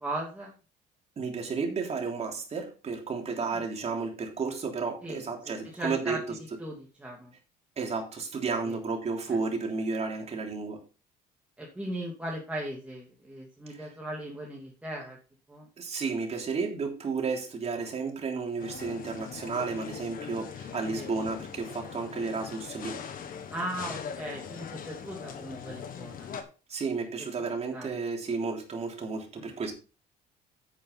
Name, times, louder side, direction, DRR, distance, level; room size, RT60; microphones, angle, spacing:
voice 1, 0.0-0.5 3.4-3.6 5.0-5.2 5.7-6.2 6.6-7.3 8.6-8.8 11.6-15.2 15.5-15.7 21.0-21.1 23.5-26.3 27.7-27.9 29.3-29.5, right 1 dB, 10° right, 2.8 m, -37 dB
voice 2, 1.2-6.2 7.8-10.8 13.7-13.9 15.8-23.0 26.7-29.7, right 4 dB, 40° right, 3.3 m, -32 dB
sound 1, 18.6-26.4, left 7 dB, 55° left, 1.7 m, -41 dB
9.2 x 8.5 x 4.1 m
cardioid pair, 110°, 17 cm